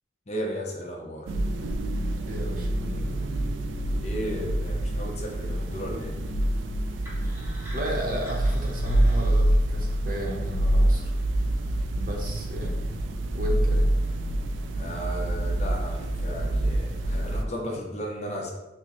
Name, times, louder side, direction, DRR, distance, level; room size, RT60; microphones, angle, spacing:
voice 1, 0.3-1.3 4.0-6.2 14.8-18.5, equal, 35° left, 0 dB, 0.6 m, -34 dB
sound 1, 1.3-17.4, right 1 dB, 85° right, 0.3 m, -26 dB
voice 2, 2.2-3.2 7.7-11.1 11.9-12.8 13.3-13.9, equal, 45° right, 0 dB, 0.7 m, -34 dB
sound 2, 7.0-10.1, equal, 10° right, 0.7 m, -45 dB
6.0 x 2.0 x 3.0 m, 1.0 s
head